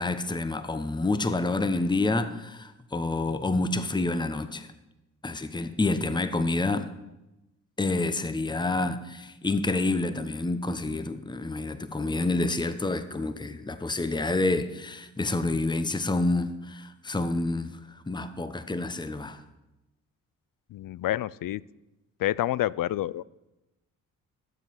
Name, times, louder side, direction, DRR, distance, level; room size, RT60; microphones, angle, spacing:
voice 1, 0.0-4.7 5.2-6.9 7.8-19.4, left 2 dB, 10° left, 0.9 m, -28 dB
voice 2, 20.7-21.6 22.2-23.2, left 14 dB, 60° left, 0.5 m, -28 dB
15.0 x 7.5 x 5.6 m
supercardioid pair, 50°, 38 cm